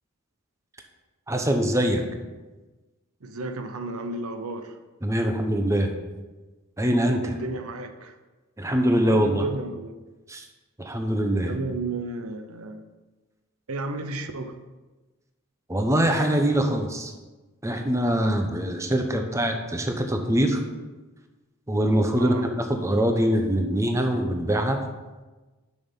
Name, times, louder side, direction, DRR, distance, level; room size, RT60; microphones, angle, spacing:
voice 1, 1.3-2.0 5.0-5.9 6.8-7.3 8.6-9.5 10.3-10.5 10.8-11.5 15.7-17.1 17.6-20.6 21.7-24.8, right 1 dB, 15° right, 5 dB, 0.7 m, -23 dB
voice 2, 3.2-4.8 7.2-8.2 9.0-9.9 11.5-12.8 13.7-14.5 22.2-22.5, right 2 dB, 85° right, 7 dB, 0.7 m, -33 dB
7.0 x 6.3 x 5.4 m, 1.2 s
head